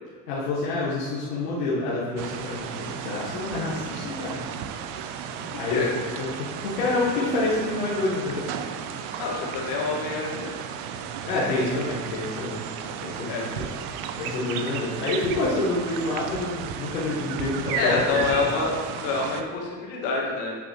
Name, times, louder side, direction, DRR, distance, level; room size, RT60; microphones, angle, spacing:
voice 1, 0.3-4.4 5.6-5.8 6.2-8.4 11.2-12.6 13.0-13.7 14.2-18.5, left 2 dB, 90° left, -8 dB, 1.4 m, -28 dB
sound 1, 2.2-19.4, right 8 dB, 70° right, 0.7 m, -34 dB
voice 2, 5.5-5.9 9.2-10.5 13.3-13.4 17.7-20.6, left 4 dB, 70° left, -2 dB, 2.0 m, -27 dB
10.0 x 5.9 x 3.1 m, 1.5 s
hypercardioid pair, 60°, 47 cm